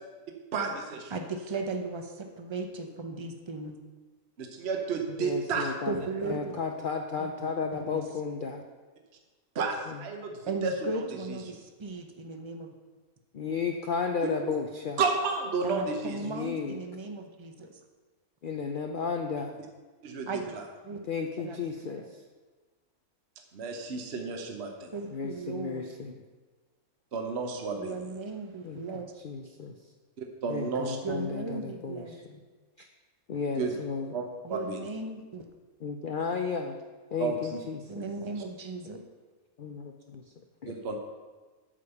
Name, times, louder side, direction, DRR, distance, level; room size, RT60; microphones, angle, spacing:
voice 1, 0.5-1.2 4.4-5.7 9.5-11.4 14.5-14.6 15.0-16.2 20.0-20.6 23.5-24.9 27.1-28.1 30.2-31.0 33.6-33.7 34.1-34.9 37.2-37.6 37.9-38.0 40.7-41.0, right 4 dB, 50° right, 3 dB, 1.1 m, -32 dB
voice 2, 1.1-3.8 5.9-6.6 7.2-8.0 10.5-12.7 15.6-17.8 20.3-20.6 20.8-21.0 21.4-22.0 24.9-25.8 27.7-29.1 31.0-32.1 34.4-35.5 37.9-39.0, right 3 dB, 30° right, 4 dB, 0.6 m, -37 dB
voice 3, 5.2-6.0 6.2-8.6 9.9-10.0 13.3-15.0 16.2-16.8 18.4-19.6 21.0-22.2 25.1-26.1 28.6-29.8 30.5-32.2 32.8-32.9 33.3-34.1 35.8-36.8 37.1-37.9 39.6-40.3 40.6-40.7, left 5 dB, 55° left, 3 dB, 0.5 m, -34 dB
8.6 x 5.2 x 7.0 m, 1.3 s
omnidirectional pair, 1.6 m